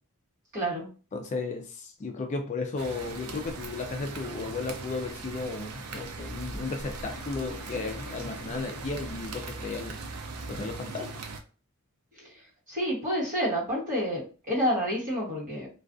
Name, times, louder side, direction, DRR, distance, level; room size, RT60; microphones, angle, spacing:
voice 1, 0.5-0.9 12.7-15.7, equal, 40° right, -4 dB, 1.0 m, -29 dB
voice 2, 1.1-10.0 10.5-11.1, left 3 dB, 35° left, 4 dB, 0.3 m, -34 dB
sound 1, 2.8-11.4, right 4 dB, 90° right, 0.4 m, -41 dB
sound 2, 3.0-10.8, equal, 5° right, 0.8 m, -46 dB
sound 3, 6.8-10.1, left 3 dB, 85° left, 0.5 m, -47 dB
2.3 x 2.3 x 2.4 m, 0.36 s
head